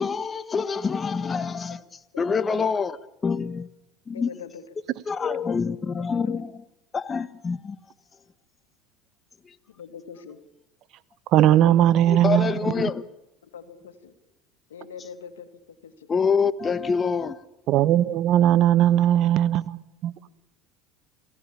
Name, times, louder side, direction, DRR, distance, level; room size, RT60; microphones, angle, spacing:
voice 1, 0.0-1.8 2.2-3.0 3.2-3.7 4.1-4.3 5.1-6.5 6.9-7.8 9.4-9.5 12.2-13.0 16.1-17.4, left 5 dB, 25° left, 13 dB, 1.4 m, -26 dB
voice 2, 4.1-5.0 6.0-6.5 9.7-10.4 11.4-12.0 13.5-14.1 14.7-15.5 15.8-16.2 17.1-17.2 18.5-18.7, left 6 dB, 90° left, 8 dB, 2.4 m, -42 dB
voice 3, 11.3-12.8 17.7-20.3, right 12 dB, 55° right, 17 dB, 1.1 m, -19 dB
27.5 x 17.0 x 8.8 m, 0.95 s
hypercardioid pair, 85°, 0 cm